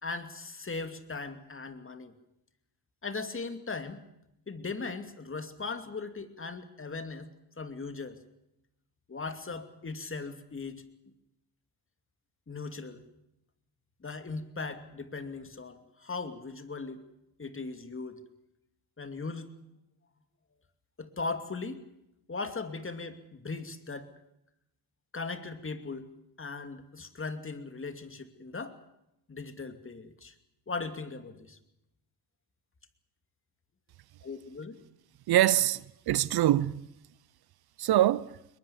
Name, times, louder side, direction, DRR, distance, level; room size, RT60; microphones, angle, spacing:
voice 1, 0.0-2.1 3.0-4.0 4.5-7.3 7.6-8.2 9.1-10.8 12.5-13.0 14.0-17.0 17.4-18.2 19.0-19.5 21.0-21.8 22.3-24.1 25.1-26.1 26.4-28.8 29.3-30.3 30.7-31.6 34.2-34.8, left 4 dB, 30° left, 2.6 m, -38 dB
voice 2, 35.3-36.9 37.8-38.4, right 13 dB, 60° right, 0.7 m, -24 dB
22.5 x 20.5 x 7.2 m
supercardioid pair, 65°, 43 cm